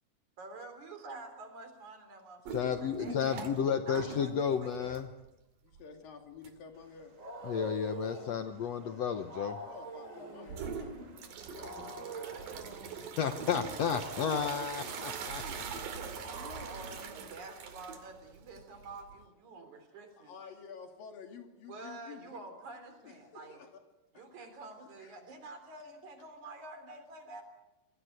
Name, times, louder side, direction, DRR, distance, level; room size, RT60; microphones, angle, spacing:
voice 1, 0.4-5.0 12.2-13.6 13.9-14.2 15.8-20.3 21.7-23.6 24.1-27.4, right 3 dB, 60° right, 7 dB, 4.8 m, -48 dB
voice 2, 2.5-5.1 7.4-9.6 13.2-15.4, left 7 dB, 65° left, 8 dB, 1.9 m, -32 dB
sound 1, 2.5-3.7 3.9-5.3 5.7-5.8 6.4-6.5 10.5-19.2, right 5 dB, 80° right, 3.9 m, -43 dB
voice 3, 5.6-7.1 8.6-12.1 15.3-16.7 20.2-22.4 23.0-23.8 24.1-24.3 25.0-25.1, left 6 dB, 85° left, 4 dB, 4.5 m, -51 dB
Wild animals, 6.8-18.0, right 2 dB, 25° right, 3.2 m, -47 dB
26.5 x 20.0 x 8.1 m, 0.96 s
omnidirectional pair, 3.9 m